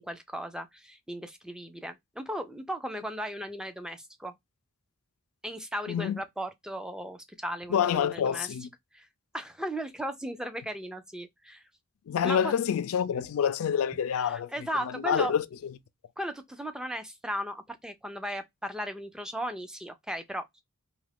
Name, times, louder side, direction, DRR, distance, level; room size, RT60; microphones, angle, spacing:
voice 1, 0.0-4.3 5.4-8.5 8.9-9.1 9.3-11.6 12.2-12.5 14.1-15.3 16.2-20.6, equal, 5° right, 0.3 m, -36 dB
voice 2, 5.9-6.2 7.7-8.7 12.1-14.5 14.9-15.4, left 8 dB, 70° left, 0.3 m, -27 dB
2.7 x 2.4 x 3.3 m
head